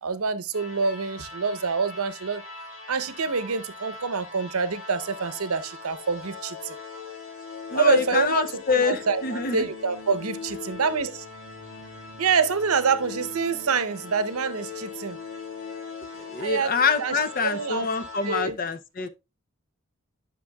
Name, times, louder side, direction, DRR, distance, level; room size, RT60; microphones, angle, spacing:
voice 1, 0.0-2.4 2.9-6.8 7.7-11.1 12.2-15.2 16.4-16.7 17.0-17.9 18.2-18.6, right 5 dB, 85° right, 0.8 m, -26 dB
sound 1, 0.5-18.4, left 4 dB, 80° left, 3.1 m, -40 dB
voice 2, 7.7-9.7 16.1-19.1, left 5 dB, 40° left, 0.7 m, -26 dB
10.0 x 6.1 x 2.3 m
head